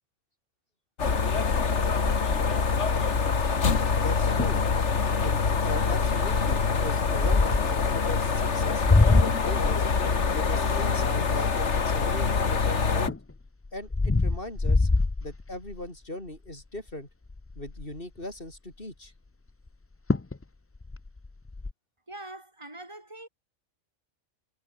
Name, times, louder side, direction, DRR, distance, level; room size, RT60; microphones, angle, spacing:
sound 1, 1.0-13.1, left 5 dB, 65° left, 2.1 m, -25 dB
sound 2, 2.1-3.5 4.1-4.2 4.4-4.7 5.2-5.5 6.3-7.8 8.5-12.4 12.8-15.9 16.3-16.6 16.9-17.0 17.3-18.0 19.7-19.8 20.1-20.4 20.7-21.7, left 3 dB, 25° left, 0.3 m, -26 dB
voice 1, 4.0-4.6 5.2-8.8 9.2-9.8 10.2-13.2 13.7-14.9 15.2-17.1 17.6-19.1, left 1 dB, 45° left, 6.1 m, -39 dB
voice 2, 22.1-23.3, right 1 dB, 25° right, 5.5 m, -43 dB
omnidirectional pair, 1.3 m